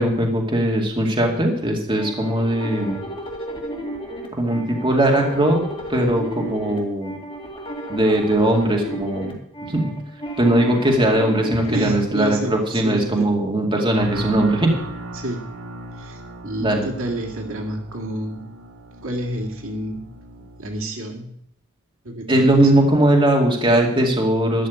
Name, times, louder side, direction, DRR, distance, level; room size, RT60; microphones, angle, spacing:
voice 1, 0.0-3.0 4.3-5.6 5.9-7.1 7.9-9.3 9.6-9.8 10.4-14.7 16.6-16.9 22.3-24.7, right 1 dB, 25° right, 0 dB, 2.3 m, -19 dB
sound 1, 2.0-11.8, right 1 dB, 25° left, 2.4 m, -33 dB
voice 2, 11.7-13.4 15.1-15.4 15.9-18.4 19.0-20.0 20.6-21.3 22.0-22.7, right 1 dB, 65° right, 2 dB, 2.1 m, -29 dB
sound 2, 14.0-20.8, equal, 85° right, 1.8 m, -37 dB
12.0 x 6.3 x 9.5 m, 0.71 s
head